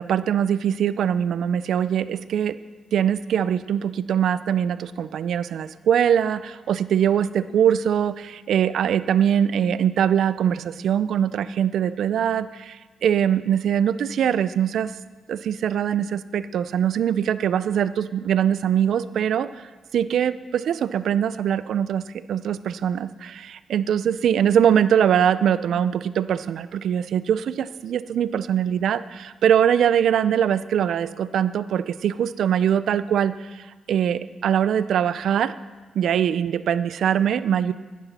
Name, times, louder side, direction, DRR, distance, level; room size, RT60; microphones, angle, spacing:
voice 1, 0.0-2.6 2.9-14.9 15.3-19.5 19.9-35.5 36.0-37.7, right 9 dB, 75° right, 15 dB, 0.4 m, -22 dB
11.0 x 9.8 x 4.2 m, 1.3 s
cardioid pair, 90°, 0 cm